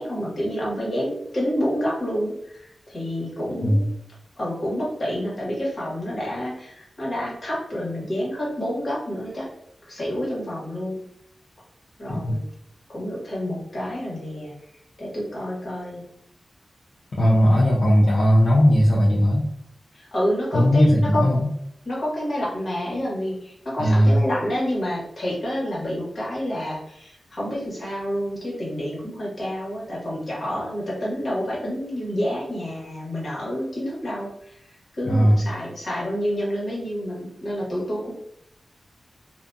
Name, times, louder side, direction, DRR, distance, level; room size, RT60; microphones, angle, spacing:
voice 1, 0.0-3.9 4.4-9.5 9.9-11.0 12.0-12.4 12.9-14.5 15.0-16.0 19.9-21.3 21.8-34.6 35.0-38.1, equal, 50° left, -5 dB, 1.2 m, -28 dB
voice 2, 17.2-19.5 20.5-21.5 23.8-24.2 35.1-35.4, equal, 75° left, -5 dB, 0.5 m, -18 dB
2.5 x 2.3 x 2.5 m, 0.74 s
wide cardioid pair, 80°, 0 cm